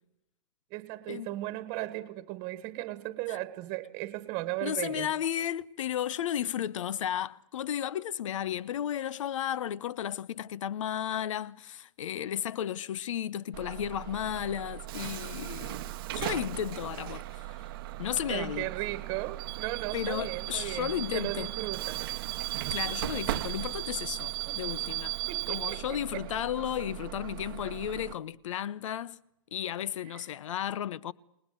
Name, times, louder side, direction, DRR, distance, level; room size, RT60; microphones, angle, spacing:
voice 1, 0.7-5.1 18.3-22.0 24.4-24.6 25.3-26.2 30.0-30.3, right 17 dB, 30° right, 1.4 m, -36 dB
voice 2, 4.6-17.6 18.0-18.7 19.9-21.5 22.7-25.2 25.5-29.2 29.5-31.1, left 10 dB, 75° left, 0.9 m, -34 dB
Bus / Alarm, 13.5-28.1, right 16 dB, 45° right, 0.9 m, -37 dB
28.5 x 20.0 x 8.0 m
supercardioid pair, 170°, 16 cm